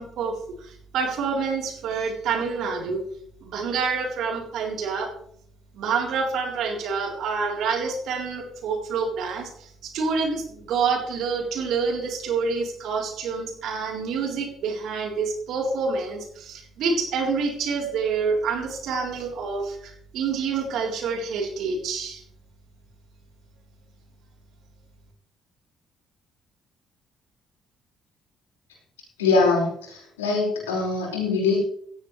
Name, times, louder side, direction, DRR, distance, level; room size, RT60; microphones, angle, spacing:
voice 1, 0.0-3.0 3.4-5.1 5.7-22.2, right 5 dB, 65° right, 1 dB, 3.8 m, -27 dB
voice 2, 29.2-31.6, left 3 dB, 90° left, -3 dB, 5.2 m, -23 dB
16.0 x 15.0 x 3.3 m, 0.64 s
hypercardioid pair, 50°, 0 cm